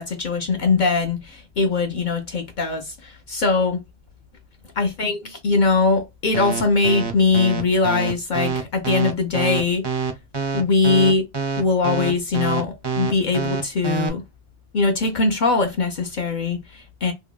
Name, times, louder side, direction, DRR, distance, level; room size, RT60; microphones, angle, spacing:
voice 1, 0.0-3.8 4.8-9.9 10.5-11.3 11.6-14.2 14.7-17.1, left 4 dB, 60° left, 0.6 m, -21 dB
sound 1, 6.3-14.1, right 5 dB, 30° right, 0.5 m, -25 dB
2.9 x 2.7 x 2.2 m
omnidirectional pair, 1.1 m